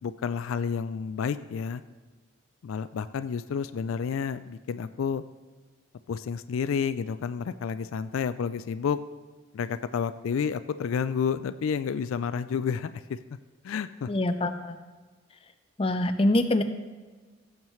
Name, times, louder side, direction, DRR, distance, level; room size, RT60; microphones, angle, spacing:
voice 1, 0.0-1.8 2.6-5.2 6.1-9.0 9.5-13.2 13.6-14.1, left 6 dB, 85° left, 13 dB, 0.3 m, -30 dB
voice 2, 14.1-14.8 15.8-16.6, left 1 dB, 25° left, 8 dB, 0.5 m, -24 dB
15.5 x 7.3 x 3.1 m, 1.4 s
head